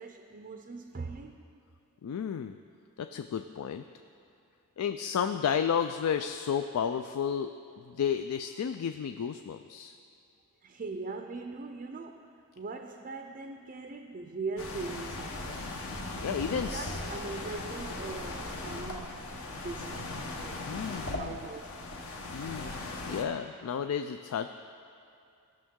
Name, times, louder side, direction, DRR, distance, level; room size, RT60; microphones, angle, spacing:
voice 1, 0.0-1.4 10.6-15.7 16.5-19.2 19.6-20.7 21.0-21.7, right 3 dB, 40° right, 5 dB, 0.4 m, -41 dB
voice 2, 2.0-2.6 3.0-3.8 4.8-7.5 7.9-9.9 16.2-17.0 20.6-21.4 22.3-24.6, left 7 dB, 85° left, 8 dB, 0.3 m, -32 dB
sound 1, 14.6-23.2, left 2 dB, 65° left, 1.1 m, -38 dB
17.0 x 6.3 x 3.7 m, 2.5 s
head